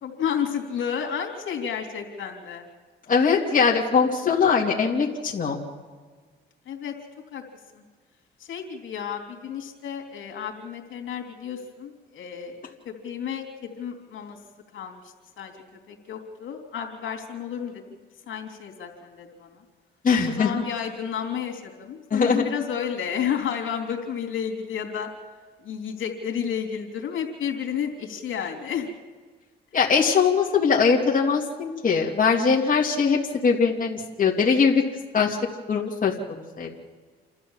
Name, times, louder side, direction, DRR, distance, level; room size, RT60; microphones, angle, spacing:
voice 1, 0.0-2.6 6.7-6.9 7.3-7.4 7.7-7.8 8.4-12.6 12.9-14.4 14.7-15.5 15.9-17.8 18.3-19.6 20.3-25.1 25.6-28.9, left 8 dB, 75° left, 2 dB, 3.4 m, -31 dB
voice 2, 3.1-5.6 20.0-20.5 22.1-22.4 29.7-34.8 35.1-35.4 35.7-36.1 36.6-36.7, left 5 dB, 40° left, -1 dB, 2.7 m, -21 dB
28.5 x 13.0 x 7.4 m, 1.5 s
cardioid pair, 90°, 20 cm